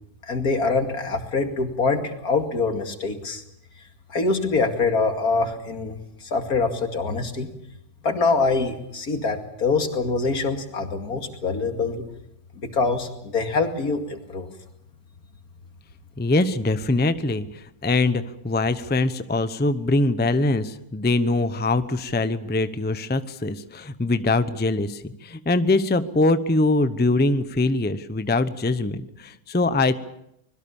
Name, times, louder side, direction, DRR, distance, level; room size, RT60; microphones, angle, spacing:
voice 1, 0.3-3.4 4.1-7.5 8.0-12.0 12.6-14.5, left 4 dB, 75° left, 5 dB, 2.8 m, -24 dB
voice 2, 16.2-29.9, left 2 dB, 10° left, 12 dB, 0.6 m, -23 dB
25.0 x 21.5 x 7.1 m, 0.78 s
omnidirectional pair, 1.6 m